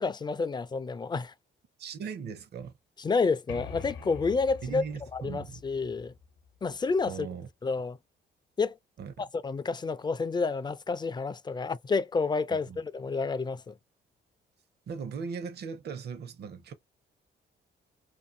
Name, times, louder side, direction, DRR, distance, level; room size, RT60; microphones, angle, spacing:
voice 1, 0.0-1.3 3.0-4.8 5.1-6.1 6.6-7.3 7.6-8.0 8.6-8.7 9.2-13.7, left 4 dB, 20° left, 0.4 m, -29 dB
voice 2, 1.8-2.7 4.6-5.6 7.0-7.5 9.0-9.3 12.5-12.8 14.9-16.7, right 6 dB, 55° right, 0.7 m, -38 dB
sound 1, 3.5-7.1, left 6 dB, 80° left, 0.8 m, -45 dB
2.6 x 2.6 x 2.5 m
cardioid pair, 90°, 20 cm